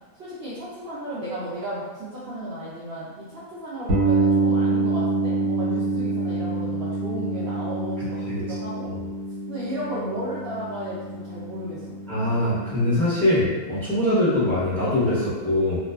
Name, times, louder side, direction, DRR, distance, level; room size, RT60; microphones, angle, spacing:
voice 1, 0.2-8.9 9.5-12.0, right 1 dB, 80° right, -9 dB, 0.5 m, -34 dB
sound 1, 3.9-13.6, right 2 dB, 65° right, 1.0 m, -27 dB
voice 2, 12.1-15.8, left 1 dB, ahead, -11 dB, 0.6 m, -22 dB
2.5 x 2.3 x 2.3 m, 1.3 s
omnidirectional pair, 1.7 m